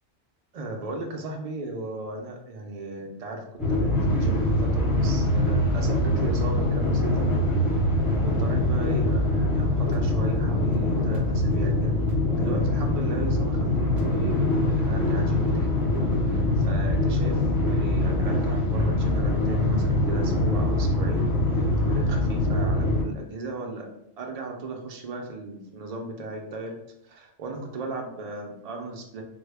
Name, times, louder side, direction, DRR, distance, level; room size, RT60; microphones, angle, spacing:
voice 1, 0.5-3.4 3.7-7.3 8.2-12.0 12.3-13.7 14.0-15.8 16.3-23.9 24.2-26.8 27.0-29.2, right 2 dB, 85° right, 1 dB, 0.3 m, -36 dB
sound 1, 3.6-23.0, left 1 dB, ahead, 0.9 m, -23 dB
3.4 x 2.2 x 3.3 m, 0.77 s
omnidirectional pair, 1.3 m